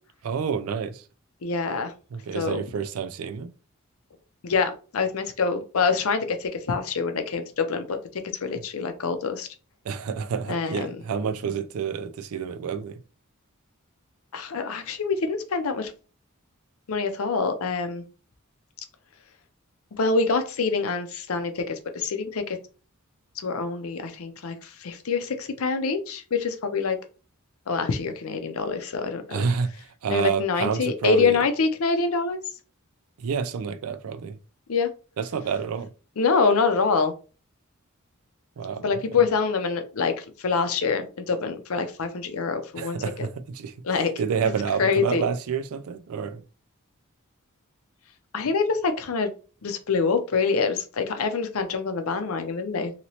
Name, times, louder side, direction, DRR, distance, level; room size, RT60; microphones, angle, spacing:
voice 1, 0.2-1.0 2.1-3.5 9.9-12.9 29.3-29.7 30.0-31.4 33.2-34.4 35.2-35.9 38.6-38.8 42.8-43.7 44.2-46.4, right 6 dB, 90° right, 0.4 m, -28 dB
voice 2, 1.4-1.9 2.3-2.6 4.4-8.0 8.4-9.5 10.5-11.0 14.3-15.9 16.9-18.0 20.0-22.6 23.4-27.0 27.7-29.5 30.1-32.4 34.7-34.9 36.2-37.1 38.8-43.0 43.8-44.1 44.8-45.2 48.3-49.3 49.6-52.9, left 4 dB, 75° left, 0.6 m, -25 dB
3.0 x 2.8 x 2.8 m
head